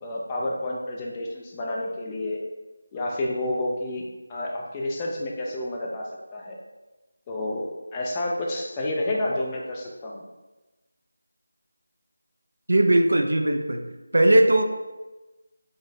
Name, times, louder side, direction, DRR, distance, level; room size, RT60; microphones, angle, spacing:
voice 1, 0.0-2.4 2.9-4.0 4.3-6.6 7.3-10.2, left 1 dB, 15° left, -2 dB, 0.4 m, -30 dB
voice 2, 12.7-13.8 14.1-14.6, right 1 dB, 70° right, 4 dB, 0.5 m, -18 dB
3.8 x 2.5 x 3.2 m, 1.1 s
figure-of-eight pair, 170°, 0 cm